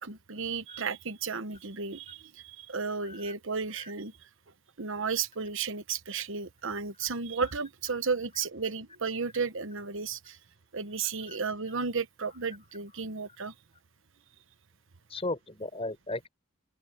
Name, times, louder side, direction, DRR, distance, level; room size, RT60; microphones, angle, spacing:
voice 1, 0.0-4.1 4.8-10.4 10.7-13.5, right 5 dB, 60° right, 1.1 m, -33 dB
voice 2, 15.1-16.3, left 2 dB, 25° left, 5.5 m, -36 dB
open air
head